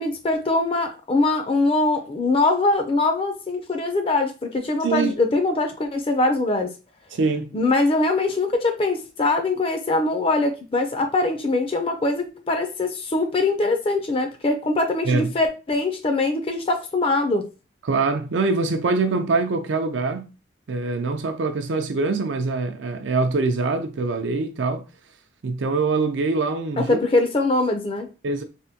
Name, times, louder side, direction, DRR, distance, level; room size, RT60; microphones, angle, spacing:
voice 1, 0.0-6.7 7.5-17.5 26.8-28.1, left 2 dB, 30° left, 0.4 m, -22 dB
voice 2, 7.1-7.5 15.1-15.3 17.8-20.3 20.7-24.9 25.4-27.0 28.2-28.4, right 3 dB, 80° right, 0.5 m, -24 dB
3.4 x 2.1 x 2.8 m
head